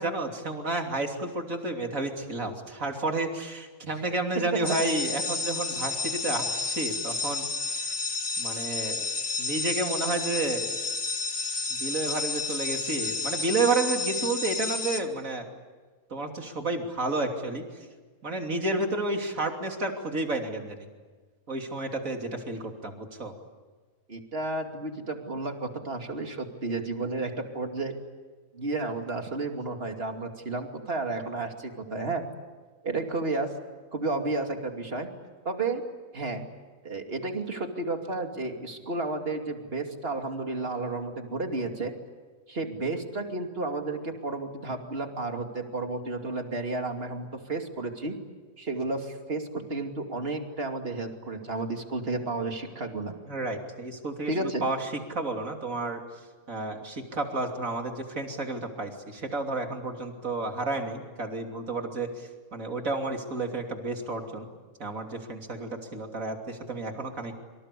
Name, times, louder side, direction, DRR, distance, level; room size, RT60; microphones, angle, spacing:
voice 1, 0.0-7.5 7.9-8.0 8.4-9.0 9.4-10.7 11.7-15.5 16.1-17.6 18.2-20.9 21.5-23.3 53.3-56.0 56.5-64.5 64.8-67.4, right 2 dB, 60° right, 3 dB, 3.5 m, -31 dB
sound 1, 4.6-15.0, left 3 dB, 45° left, 1.7 m, -31 dB
voice 2, 24.1-27.9 28.5-32.3 32.8-33.5 33.9-35.1 35.4-35.8 36.1-36.4 36.8-41.9 42.5-48.1 48.6-53.1 54.3-54.7, right 2 dB, 40° right, 4 dB, 2.9 m, -32 dB
26.5 x 25.5 x 8.4 m, 1.4 s
omnidirectional pair, 1.6 m